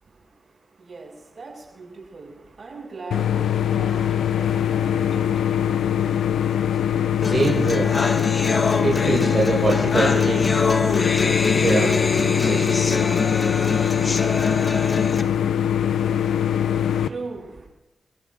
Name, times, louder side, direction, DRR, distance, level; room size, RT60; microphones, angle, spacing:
voice 1, 0.8-6.8 16.7-17.7, right 3 dB, 60° right, -1 dB, 6.8 m, -40 dB
sound 1, 3.1-17.1, left 9 dB, 90° left, 0.5 m, -22 dB
sound 2, 7.2-15.2, left 3 dB, 50° left, 1.3 m, -24 dB
voice 2, 7.2-7.9 8.8-10.4 11.5-12.8, right 3 dB, 40° right, -4 dB, 5.3 m, -24 dB
30.0 x 14.5 x 2.6 m, 0.92 s
supercardioid pair, 45°, 0 cm